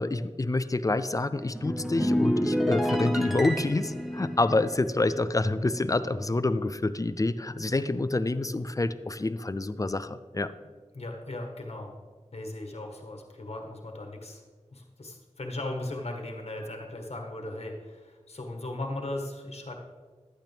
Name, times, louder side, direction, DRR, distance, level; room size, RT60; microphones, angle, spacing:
voice 1, 0.0-10.5, left 2 dB, 30° left, 13 dB, 0.4 m, -27 dB
sound 1, 1.4-6.0 6.3-6.6, equal, ahead, 0.8 m, -30 dB
voice 2, 10.9-11.9 12.3-14.4 14.7-19.8, left 1 dB, 60° left, 1 dB, 1.6 m, -37 dB
12.0 x 8.8 x 3.5 m, 1.5 s
wide cardioid pair, 55°, 12 cm